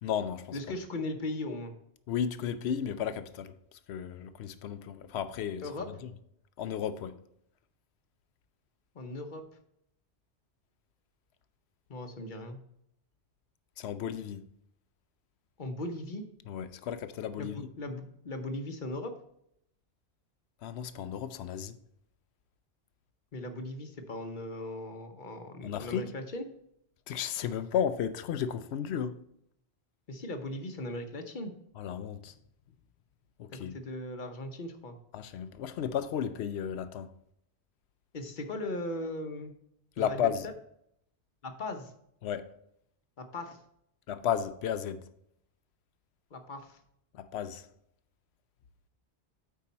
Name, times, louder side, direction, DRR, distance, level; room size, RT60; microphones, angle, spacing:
voice 1, 0.0-0.6 2.1-3.5 3.9-6.1 6.6-7.2 13.8-14.5 16.5-17.7 20.6-21.8 25.6-26.1 27.1-29.1 31.8-32.3 33.4-33.7 35.1-37.1 40.0-40.5 42.2-42.5 44.1-45.0 47.1-47.7, left 8 dB, 80° left, 0.8 m, -34 dB
voice 2, 0.5-1.7 5.6-5.9 8.9-9.4 11.9-12.6 15.6-16.2 17.4-19.1 23.3-26.5 28.9-29.0 30.1-31.5 33.7-35.0 38.1-39.5 40.0-40.2 41.4-41.9 43.2-43.6 46.3-46.8, left 1 dB, 50° left, 1.0 m, -38 dB
8.5 x 4.7 x 4.1 m
omnidirectional pair, 1.1 m